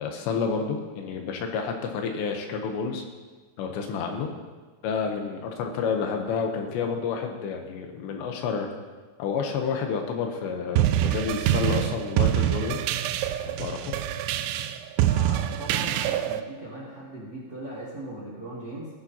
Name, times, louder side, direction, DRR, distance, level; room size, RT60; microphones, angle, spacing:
voice 1, 0.0-3.0 3.6-4.3 4.8-8.7 9.2-12.8 13.5-14.0, left 5 dB, 75° left, 3 dB, 3.0 m, -29 dB
sound 1, 10.8-16.4, right 12 dB, 85° right, 2.9 m, -25 dB
voice 2, 15.0-18.9, right 1 dB, 35° right, -6 dB, 1.7 m, -38 dB
17.5 x 9.6 x 2.8 m, 1.3 s
omnidirectional pair, 5.3 m